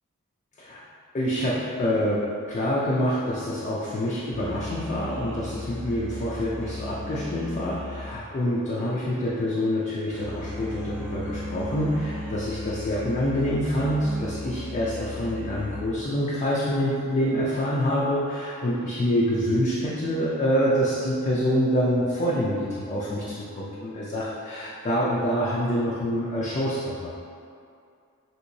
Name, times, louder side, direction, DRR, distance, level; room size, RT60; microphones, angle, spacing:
voice 1, 1.1-27.1, equal, 30° left, -6 dB, 0.3 m, -26 dB
sound 1, 4.3-9.3 10.1-16.1, left 2 dB, 35° right, 0.7 m, -36 dB
3.4 x 2.8 x 2.6 m, 2.4 s
head